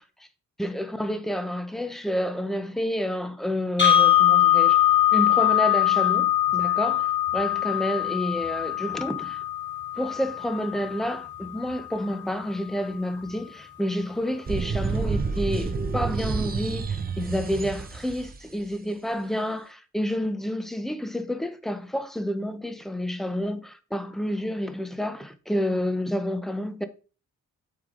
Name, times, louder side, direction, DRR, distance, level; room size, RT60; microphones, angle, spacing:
voice 1, 0.6-4.8 5.1-9.4 10.0-26.8, equal, ahead, 0.8 m, -29 dB
sound 1, 3.8-11.8, left 12 dB, 40° left, 2.6 m, -22 dB
sound 2, 14.5-18.4, right 5 dB, 30° right, 0.7 m, -29 dB
8.5 x 4.9 x 3.8 m
cardioid pair, 115°, 30 cm